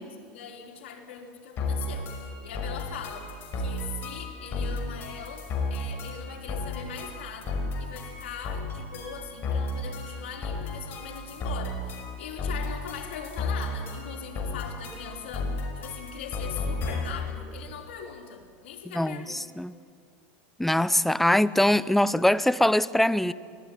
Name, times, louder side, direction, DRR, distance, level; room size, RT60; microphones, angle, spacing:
voice 1, 0.0-19.5, left 7 dB, 90° left, 3.9 m, -41 dB
sound 1, 1.6-17.3, left 2 dB, 40° left, 5.8 m, -33 dB
voice 2, 18.9-19.7 20.6-23.3, left 1 dB, 5° left, 0.6 m, -23 dB
24.0 x 18.5 x 10.0 m
supercardioid pair, 130°, 6 cm